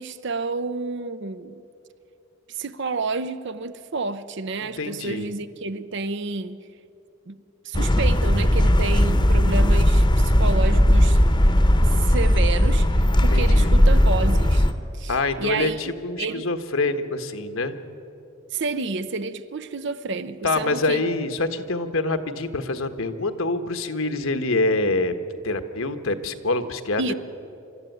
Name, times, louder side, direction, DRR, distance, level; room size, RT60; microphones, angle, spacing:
voice 1, 0.0-1.6 2.5-6.6 7.3-7.4 7.6-11.2 11.9-14.7 14.9-15.8 16.2-16.5 18.5-21.0 27.0-27.1, right 3 dB, 55° right, 0.7 m, -30 dB
voice 2, 4.8-5.3 13.3-13.7 15.1-17.7 20.4-25.1 25.4-27.1, left 2 dB, 70° left, 1.3 m, -25 dB
sound 1, 7.7-14.7, equal, 20° left, 0.9 m, -17 dB
27.0 x 13.0 x 9.3 m
head